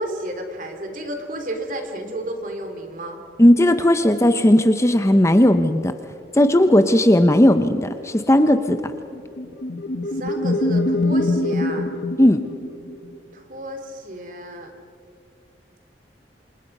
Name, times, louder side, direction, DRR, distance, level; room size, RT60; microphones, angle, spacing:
voice 1, 0.0-3.2 10.0-11.9 13.3-14.7, right 1 dB, 50° right, 5 dB, 3.0 m, -32 dB
voice 2, 3.4-5.9 6.3-8.9 12.2-12.5, left 1 dB, 15° left, 9 dB, 0.8 m, -16 dB
sound 1, 9.1-13.1, left 2 dB, 80° left, 1.6 m, -24 dB
28.5 x 27.0 x 5.4 m, 2.3 s
head